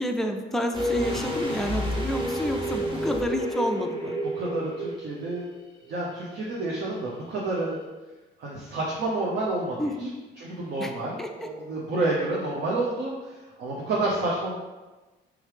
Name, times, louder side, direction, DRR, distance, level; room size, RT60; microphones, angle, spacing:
voice 1, 0.0-4.1 9.8-10.1 10.8-10.9 11.2-11.5, equal, ahead, 3 dB, 0.4 m, -29 dB
sound 1, 0.7-5.6 5.8-5.9, equal, 25° right, 1.0 m, -30 dB
voice 2, 4.3-5.4 5.9-7.8 8.4-10.1 10.4-14.5, right 2 dB, 60° right, -4 dB, 0.7 m, -29 dB
3.5 x 3.1 x 3.3 m, 1.2 s
cardioid pair, 90°, 20 cm